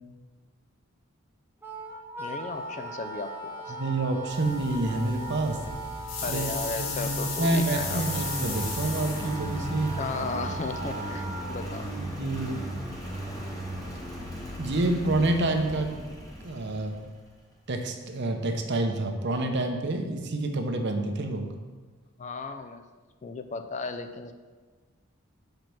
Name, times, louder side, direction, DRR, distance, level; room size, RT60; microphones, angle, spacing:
Wind instrument woodwind instrument, 1.6-11.6, right 2 dB, 10° right, 0.9 m, -39 dB
voice 1, 2.2-3.8 6.2-8.0 10.0-11.9 22.2-22.8 23.2-24.3, left 4 dB, 35° left, 8 dB, 0.4 m, -35 dB
voice 2, 3.8-5.6 6.3-6.5 6.8-10.0 12.0-12.7 14.6-15.9 16.4-17.0 17.7-21.5, right 2 dB, 55° right, 5 dB, 0.8 m, -28 dB
sound 1, 4.3-10.6, left 3 dB, 75° left, 1.4 m, -36 dB
Engine, 7.7-17.2, right 1 dB, 15° left, 1.4 m, -36 dB
5.8 x 5.2 x 5.9 m, 1.4 s
head